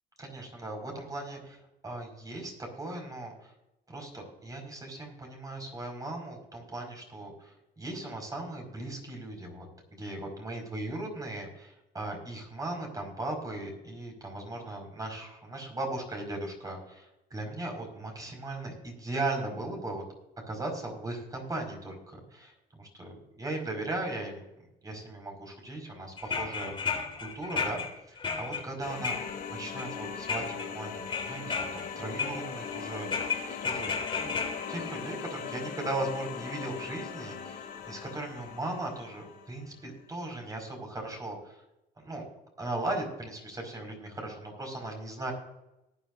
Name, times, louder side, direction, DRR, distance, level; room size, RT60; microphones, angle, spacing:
voice 1, 0.2-3.5 3.9-20.0 20.5-24.4 24.8-27.8 28.1-29.2 29.5-30.4 30.7-34.4 34.7-41.6 42.0-42.2 42.6-45.3, right 2 dB, 20° right, 2 dB, 5.2 m, -38 dB
sound 1, 26.2-29.9 30.3-30.7 31.1-31.9 32.2-32.8 33.1-35.7 36.8-36.9 37.9-38.0 38.4-38.5, left 5 dB, 30° left, 3.4 m, -34 dB
sound 2, 28.8-39.6, left 7 dB, 65° left, 2.2 m, -40 dB
19.5 x 10.0 x 2.6 m, 0.88 s
cardioid pair, 110°, 17 cm